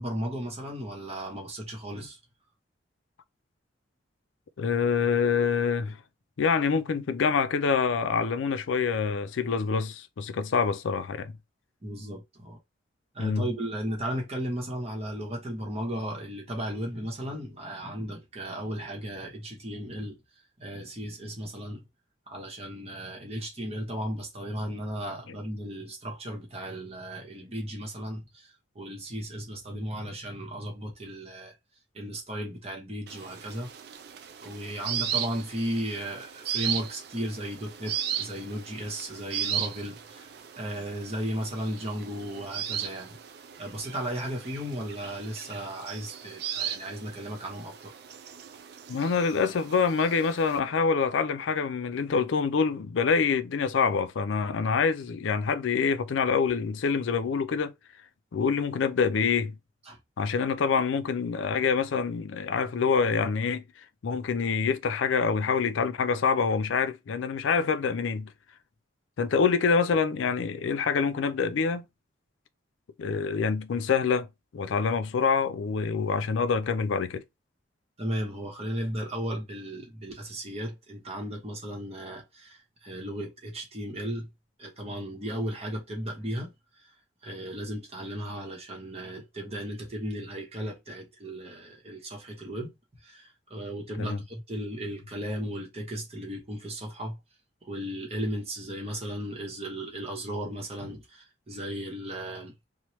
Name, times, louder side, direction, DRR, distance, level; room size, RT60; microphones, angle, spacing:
voice 1, 0.0-2.2 11.8-12.6 13.1-20.2 20.6-21.8 22.3-31.5 31.9-33.7 34.4-40.3 40.6-43.2 43.6-47.9 59.9-60.0 78.0-84.3 84.6-86.5 87.2-92.7 93.0-97.2 97.6-102.5, equal, 35° right, 0.9 m, -35 dB
voice 2, 4.6-6.0 6.4-11.3 13.2-13.5 48.9-57.7 58.3-59.6 60.2-63.6 64.0-68.3 69.2-71.8 73.0-74.3 74.5-77.2 94.0-94.2, left 5 dB, 85° left, 0.4 m, -26 dB
sound 1, 33.1-50.6, right 9 dB, 60° right, 0.3 m, -37 dB
3.0 x 2.1 x 3.0 m
head